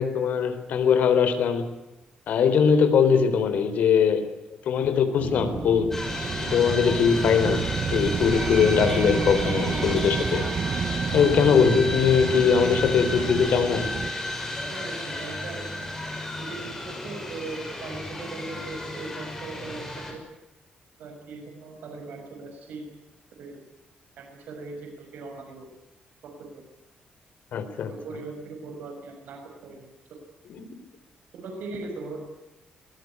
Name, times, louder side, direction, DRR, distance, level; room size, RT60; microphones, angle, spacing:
voice 1, 0.0-1.8 2.3-4.3 4.7-6.0 6.4-7.6 7.9-10.5 11.1-14.0 27.5-27.9 30.5-30.6, left 6 dB, 70° left, 9 dB, 3.8 m, -21 dB
sound 1, 5.2-14.1, right 6 dB, 35° right, 0.9 m, -30 dB
sound 2, 5.9-20.1, left 2 dB, 10° left, 6.2 m, -33 dB
voice 2, 14.6-16.0 16.4-20.2 21.0-22.9 23.4-23.6 24.2-25.7 26.4-26.6 27.9-30.2 31.3-32.3, right 3 dB, 85° right, 3 dB, 5.7 m, -39 dB
22.5 x 20.5 x 9.7 m, 0.98 s
wide cardioid pair, 165°, 3 cm